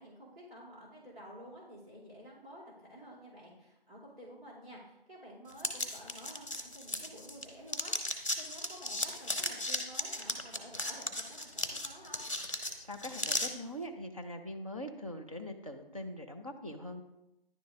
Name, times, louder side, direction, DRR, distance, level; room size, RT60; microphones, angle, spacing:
voice 1, 0.0-12.2, equal, 85° right, -6 dB, 2.2 m, -51 dB
sound 1, 5.6-7.4 7.7-13.5, left 2 dB, 35° left, 0.6 m, -36 dB
voice 2, 12.8-17.0, equal, 35° right, 3 dB, 0.4 m, -42 dB
10.0 x 3.6 x 2.5 m, 0.92 s
figure-of-eight pair, 170°, 30 cm